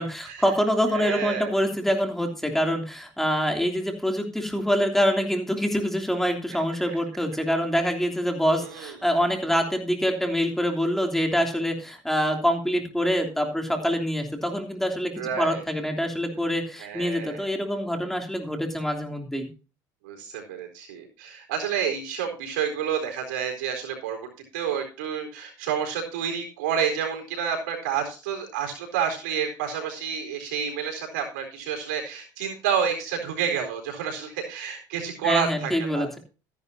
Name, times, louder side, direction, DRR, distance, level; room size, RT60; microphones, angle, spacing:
voice 1, 0.0-19.5 35.2-36.2, equal, 5° left, 3 dB, 3.0 m, -25 dB
voice 2, 0.9-1.5 8.6-9.0 15.2-15.6 16.8-17.4 20.0-36.2, right 7 dB, 90° right, 2 dB, 4.1 m, -29 dB
13.5 x 11.0 x 2.8 m, 0.34 s
supercardioid pair, 95°, 10 cm